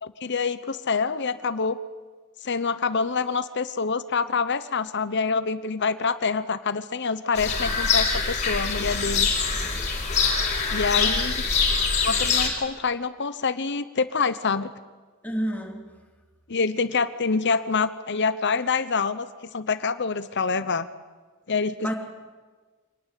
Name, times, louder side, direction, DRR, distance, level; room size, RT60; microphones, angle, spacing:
voice 1, 0.0-1.8 2.4-9.3 10.7-11.3 12.0-14.7 16.5-19.3 19.5-20.9 21.5-21.8, left 5 dB, 55° left, 14 dB, 0.9 m, -26 dB
sound 1, 7.3-12.5, left 5 dB, 35° left, 4.8 m, -24 dB
voice 2, 15.2-15.9 21.8-21.9, equal, 5° left, 2 dB, 3.2 m, -30 dB
25.0 x 19.5 x 8.4 m, 1.4 s
head